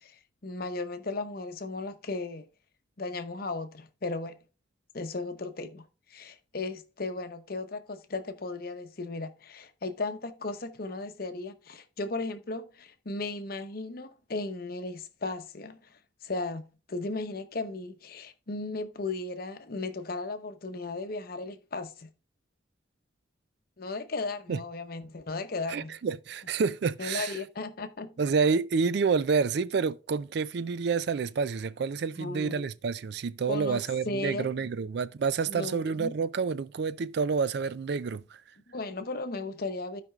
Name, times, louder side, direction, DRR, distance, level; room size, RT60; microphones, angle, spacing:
voice 1, 0.0-2.4 3.0-4.4 4.9-22.1 23.8-26.0 27.0-28.1 32.2-32.6 33.5-34.5 35.5-36.1 38.7-40.0, left 3 dB, 50° left, 0.8 m, -36 dB
voice 2, 25.7-27.4 28.2-38.4, right 5 dB, 55° right, 0.4 m, -28 dB
15.5 x 5.2 x 2.4 m
head